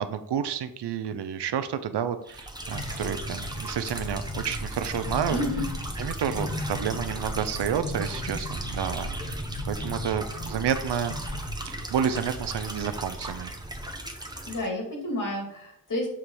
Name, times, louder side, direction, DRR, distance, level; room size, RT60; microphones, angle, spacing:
voice 1, 0.0-5.4 6.0-9.4 9.7-11.2 11.6-13.5, right 8 dB, 75° right, 11 dB, 0.6 m, -30 dB
sound 1, 2.3-14.7, right 1 dB, 10° right, 0.9 m, -38 dB
sound 2, 2.7-13.9, left 1 dB, 80° left, 2.3 m, -36 dB
voice 2, 5.3-5.7 14.5-16.1, left 1 dB, 50° left, -1 dB, 2.5 m, -30 dB
7.1 x 2.9 x 4.7 m, 0.72 s
cardioid pair, 60°, 41 cm